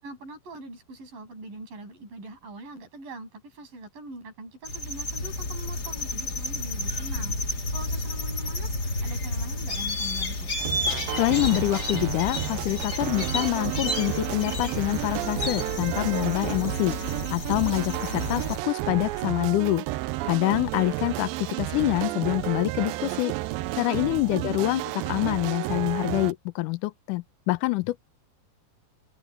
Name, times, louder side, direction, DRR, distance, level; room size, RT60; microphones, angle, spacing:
voice 1, 0.0-10.5 24.3-24.6 24.8-24.9, right 2 dB, 65° right, 9.6 m, -43 dB
sound 1, 4.6-18.6, left 2 dB, 30° left, 3.0 m, -31 dB
sound 2, 10.6-26.3, right 17 dB, 85° right, 2.4 m, -32 dB
voice 2, 11.2-17.0 17.3-19.9 20.2-23.3 23.7-24.8 25.1-28.0, left 19 dB, 75° left, 2.0 m, -26 dB
omnidirectional pair, 4.2 m